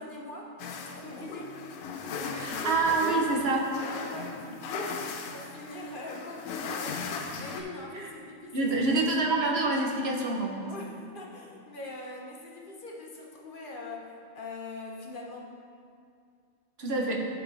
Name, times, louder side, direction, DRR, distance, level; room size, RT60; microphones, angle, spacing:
voice 1, 0.0-1.5 2.1-3.2 3.5-5.0 5.3-8.7 10.6-15.5, left 2 dB, 45° left, -1 dB, 0.8 m, -42 dB
sound 1, 0.6-7.6, left 5 dB, 85° left, 1.1 m, -38 dB
voice 2, 2.3-3.7 8.0-8.1 8.5-10.7 16.8-17.2, right 3 dB, 50° right, 0 dB, 1.1 m, -27 dB
11.0 x 4.1 x 4.0 m, 2.3 s
omnidirectional pair, 1.5 m